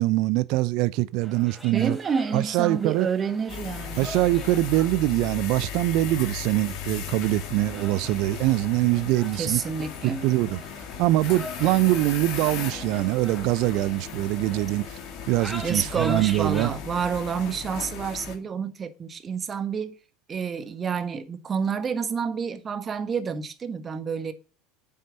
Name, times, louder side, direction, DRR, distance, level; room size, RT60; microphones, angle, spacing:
voice 1, 0.0-2.0 2.3-3.1 4.0-9.6 10.0-10.6 11.0-15.0 15.3-16.7, right 17 dB, 55° right, 0.8 m, -23 dB
sound 1, 1.2-16.7, equal, 5° right, 4.7 m, -43 dB
voice 2, 1.7-4.1 9.4-10.3 15.6-20.0 20.3-24.3, right 6 dB, 30° right, 1.7 m, -29 dB
sound 2, 3.5-18.4, left 8 dB, 50° left, 3.0 m, -37 dB
9.6 x 7.6 x 9.4 m
figure-of-eight pair, 75°, 0 cm